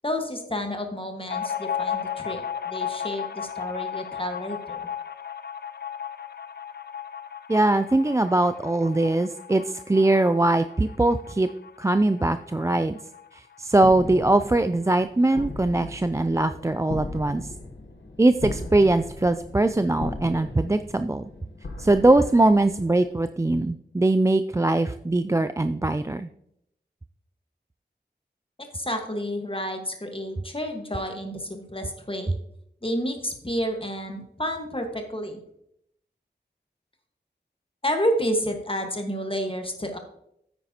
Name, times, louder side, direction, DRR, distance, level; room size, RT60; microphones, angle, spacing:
voice 1, 0.0-4.8 28.7-32.3 32.8-35.4 37.8-40.0, equal, 30° left, 4 dB, 1.5 m, -30 dB
sound 1, 1.3-14.4 14.7-14.8 15.1-15.8, left 8 dB, 65° left, 0.5 m, -35 dB
voice 2, 7.5-11.5 11.8-13.0 13.3-17.5 18.2-21.3 21.8-26.3, right 2 dB, 15° right, 10 dB, 0.3 m, -21 dB
sound 2, 13.8-23.3, left 2 dB, 80° left, 1.1 m, -38 dB
9.2 x 8.9 x 2.9 m, 0.73 s
wide cardioid pair, 50°, 18 cm